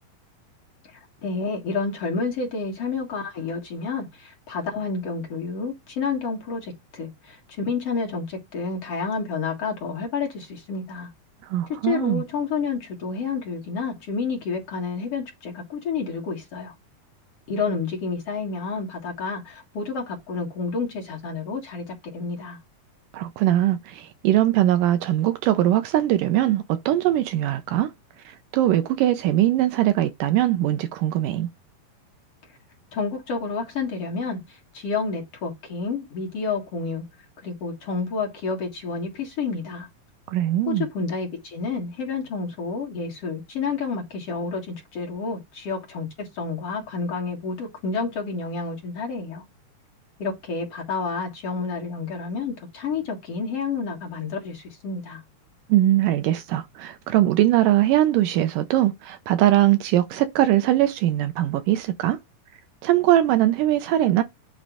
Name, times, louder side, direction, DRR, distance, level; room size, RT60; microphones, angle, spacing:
voice 1, 0.8-11.1 11.8-16.7 17.5-22.6 32.9-37.0 37.4-39.9 40.7-49.4 50.2-55.2, left 4 dB, 50° left, 2.4 m, -29 dB
voice 2, 11.4-12.2 23.1-27.9 28.3-31.5 40.3-40.9 55.7-62.2 62.8-64.2, right 13 dB, 80° right, 2.1 m, -21 dB
9.1 x 3.2 x 4.9 m
omnidirectional pair, 4.1 m